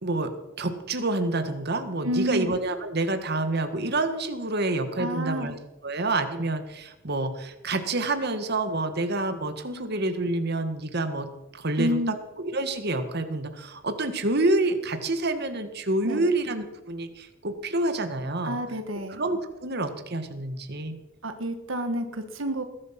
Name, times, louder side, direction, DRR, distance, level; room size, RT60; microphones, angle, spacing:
voice 1, 0.6-11.3 11.5-18.6 19.1-21.0, right 2 dB, 55° right, 8 dB, 1.7 m, -28 dB
voice 2, 2.0-2.5 5.0-5.5 11.8-12.1 16.0-16.3 18.4-19.2 21.2-22.6, equal, 75° right, 7 dB, 1.6 m, -29 dB
20.5 x 12.0 x 5.9 m, 0.95 s
head